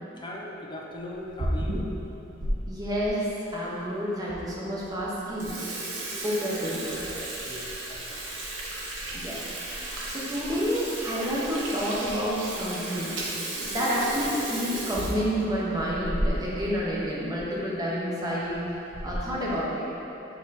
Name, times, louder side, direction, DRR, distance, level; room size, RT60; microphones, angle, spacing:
voice 1, 0.2-1.9 7.4-8.3 13.1-13.3, left 1 dB, 25° left, -2 dB, 0.6 m, -39 dB
Water tap faucet / Sink (filling or washing), 1.1-2.5 3.0-3.1 3.8-3.9 4.3-4.4 4.8-5.0 5.3-16.7 17.0-17.1 17.3-17.5 18.3-18.5 18.9-19.4, right 1 dB, 70° right, 1.0 m, -33 dB
voice 2, 2.7-5.6 6.2-7.0 9.1-9.5 9.8-13.2 13.7-18.6 19.0-19.8, equal, 20° right, -7 dB, 1.0 m, -29 dB
8.8 x 3.0 x 4.1 m, 3.0 s
head